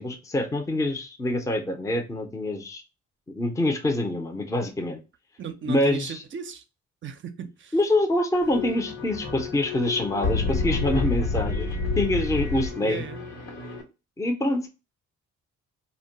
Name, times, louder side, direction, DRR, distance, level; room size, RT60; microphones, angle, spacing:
voice 1, 0.0-2.8 3.3-5.0 5.7-6.2 7.7-13.0 14.2-14.7, left 1 dB, 10° left, 0.5 m, -26 dB
voice 2, 5.4-6.6 7.0-7.8 12.8-13.2, right 7 dB, 40° right, 0.5 m, -36 dB
sound 1, 8.4-13.8, left 3 dB, 85° left, 1.1 m, -29 dB
2.2 x 2.1 x 3.7 m
cardioid pair, 90°, 30 cm